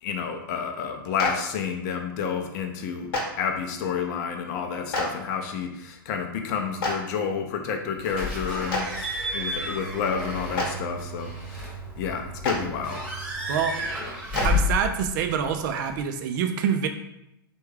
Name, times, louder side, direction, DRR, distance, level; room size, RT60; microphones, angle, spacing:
voice 1, 0.0-3.1 3.4-11.6 12.0-13.0, left 6 dB, 45° left, 5 dB, 0.5 m, -30 dB
Clapping, 1.2-1.3 3.1-3.2 4.9-5.0 6.8-6.9 8.7-8.8 10.5-10.7 12.4-12.5 14.3-14.4, left 3 dB, 65° left, 1.0 m, -26 dB
Slam / Squeak / Alarm, 8.0-16.0, left 2 dB, 10° right, 1.2 m, -31 dB
voice 2, 14.4-16.9, right 7 dB, 55° right, 6 dB, 0.4 m, -26 dB
3.4 x 2.3 x 3.2 m, 0.83 s
hypercardioid pair, 110°, 12 cm